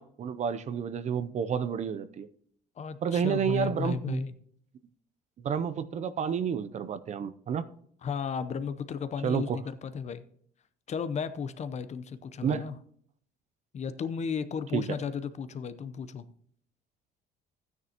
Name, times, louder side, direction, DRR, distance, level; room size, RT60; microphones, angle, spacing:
voice 1, 0.0-2.3 3.0-4.2 5.4-7.6 9.2-9.6 12.4-12.6 14.7-14.8, right 7 dB, 45° right, 13 dB, 0.5 m, -30 dB
voice 2, 2.8-4.3 8.0-10.3 10.9-12.8 13.7-16.3, left 6 dB, 40° left, 12 dB, 0.7 m, -34 dB
13.0 x 9.4 x 2.9 m, 0.63 s
cardioid pair, 110°, 17 cm